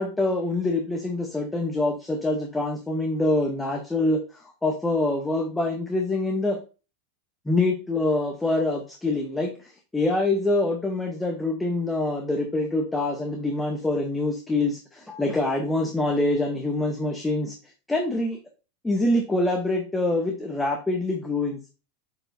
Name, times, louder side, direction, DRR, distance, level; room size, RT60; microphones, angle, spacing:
voice 1, 0.0-6.6 7.5-9.5 9.9-17.5 17.9-18.4 18.8-21.6, left 2 dB, 5° left, 2 dB, 0.8 m, -25 dB
8.7 x 4.5 x 2.6 m, 0.33 s
supercardioid pair, 160°, 0 cm